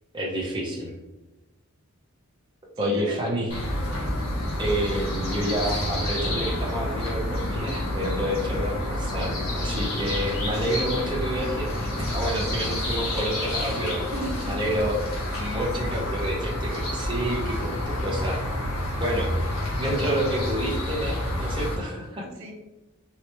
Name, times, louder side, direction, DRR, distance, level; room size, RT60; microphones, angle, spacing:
voice 1, 0.1-0.9 2.8-3.5 4.6-14.0 14.4-15.0 15.3-18.4 19.0-19.3 19.8-22.3, equal, 20° right, -3 dB, 0.6 m, -29 dB
voice 2, 2.8-3.2 13.6-14.6 22.2-22.5, right 1 dB, 65° right, 2 dB, 0.6 m, -36 dB
sound 1, 3.5-21.7, left 1 dB, 80° left, 1.3 m, -29 dB
3.2 x 2.9 x 2.8 m, 1.0 s
head